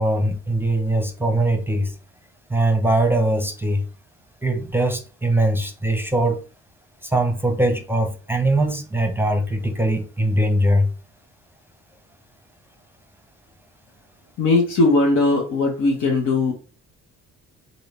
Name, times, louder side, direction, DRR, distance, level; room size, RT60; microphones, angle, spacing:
voice 1, 0.0-1.9 2.5-3.8 4.4-6.4 7.1-10.9, right 1 dB, 5° right, 0.7 m, -21 dB
voice 2, 14.4-16.5, left 3 dB, 80° left, 1.0 m, -19 dB
3.2 x 2.8 x 4.1 m
cardioid pair, 90°, 30 cm